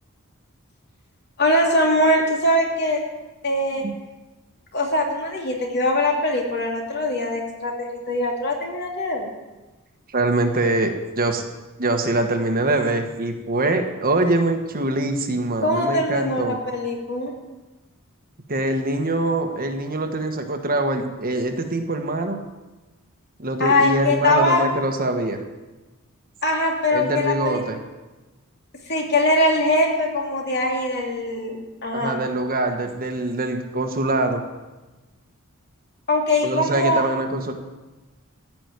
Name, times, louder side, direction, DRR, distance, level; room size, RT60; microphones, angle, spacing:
voice 1, 1.4-3.0 3.4-3.8 4.7-9.3 15.6-16.4 16.7-17.3 23.6-24.6 26.4-27.6 28.9-32.2 36.1-37.0, left 1 dB, 50° left, 0 dB, 2.7 m, -22 dB
voice 2, 10.1-11.4 11.8-16.6 18.5-22.4 23.4-25.4 26.9-27.8 31.9-34.4 36.4-37.5, right 2 dB, 45° right, 5 dB, 1.4 m, -23 dB
15.0 x 6.1 x 9.6 m, 1.2 s
head